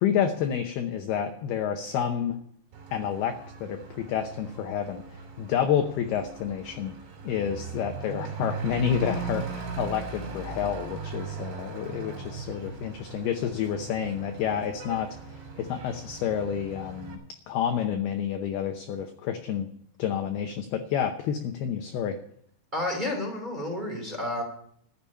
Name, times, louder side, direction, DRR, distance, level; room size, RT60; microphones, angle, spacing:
voice 1, 0.0-2.4 2.9-6.9 7.2-17.2 17.5-19.7 20.0-22.2, left 8 dB, 75° left, 6 dB, 2.4 m, -29 dB
Truck / Accelerating revving vroom, 2.7-17.2, right 5 dB, 75° right, 5.4 m, -38 dB
voice 2, 22.7-24.4, left 1 dB, 10° right, 0 dB, 2.8 m, -30 dB
13.5 x 7.0 x 9.8 m, 0.64 s
omnidirectional pair, 5.4 m